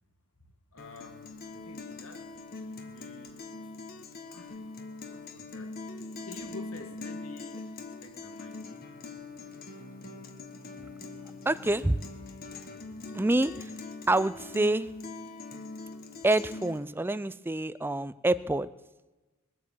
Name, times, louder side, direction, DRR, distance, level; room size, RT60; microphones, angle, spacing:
voice 1, 0.4-1.3 1.6-2.3 2.6-3.4 4.0-4.6 5.1-5.8 6.2-8.7, left 2 dB, 80° left, 5 dB, 2.0 m, -49 dB
Guitar, 0.8-16.8, left 3 dB, 45° left, 1.3 m, -43 dB
voice 2, 11.5-12.0 13.1-13.7 14.1-14.9 16.2-18.7, right 2 dB, 10° right, 15 dB, 0.4 m, -27 dB
21.5 x 8.5 x 7.4 m, 1.2 s
head